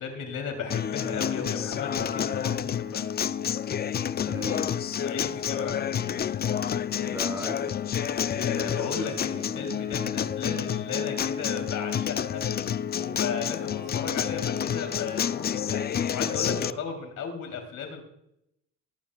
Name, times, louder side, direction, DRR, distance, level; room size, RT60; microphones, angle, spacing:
voice 1, 0.0-3.0 4.9-6.1 8.2-12.6 12.9-18.0, left 5 dB, 75° left, 4 dB, 3.1 m, -35 dB
Acoustic guitar, 0.7-16.7, left 9 dB, 35° left, 0.4 m, -29 dB
voice 2, 4.2-4.7 7.0-7.8 8.4-9.8, equal, 10° right, 3 dB, 3.2 m, -38 dB
22.0 x 8.9 x 2.3 m, 0.77 s
cardioid pair, 90°, 30 cm